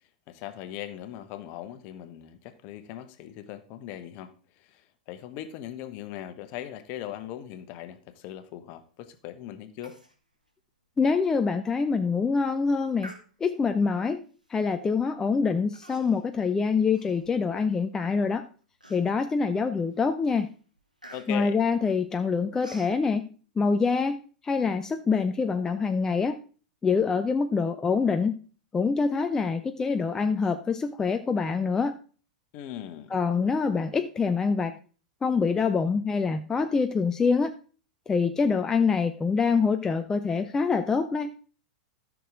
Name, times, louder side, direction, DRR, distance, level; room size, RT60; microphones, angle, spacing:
voice 1, 0.3-10.0 21.1-21.6 32.5-33.1, left 12 dB, 40° left, 11 dB, 1.1 m, -40 dB
Human voice, 9.8-10.2 10.5-10.6 11.1-11.2 11.8-12.0 13.0-13.7 14.5-14.7 15.7-16.3 16.7-17.7 18.2-18.3 18.8-19.4 19.9-20.1 20.4-23.0, right 1 dB, 90° right, 1.7 m, -49 dB
voice 2, 11.0-13.1 13.4-14.2 14.5-18.5 18.9-20.5 21.3-23.3 23.6-26.4 26.8-28.4 28.7-32.0 33.1-34.7 35.2-37.6 38.1-41.3, left 5 dB, 15° left, 8 dB, 0.5 m, -25 dB
13.5 x 6.3 x 3.7 m, 0.39 s
figure-of-eight pair, 95°, 4 cm